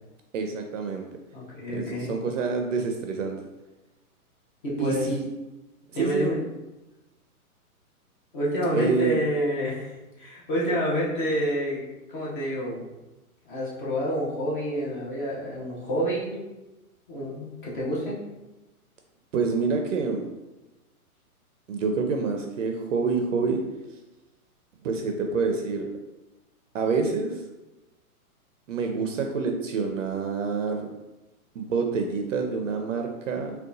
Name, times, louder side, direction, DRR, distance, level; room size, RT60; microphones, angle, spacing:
voice 1, 0.3-1.0 1.7-3.4 4.8-5.3 5.9-6.4 8.7-9.2 19.3-20.3 21.7-23.6 24.8-25.9 26.7-27.3 28.7-30.9 31.6-33.6, right 4 dB, 60° right, 3 dB, 0.5 m, -27 dB
voice 2, 1.3-2.1 4.6-5.1 5.9-6.4 8.3-11.8 12.1-12.8 13.5-16.4 17.1-18.2, equal, 35° left, -6 dB, 0.8 m, -28 dB
3.6 x 2.3 x 2.6 m, 1.0 s
hypercardioid pair, 160°, 45 cm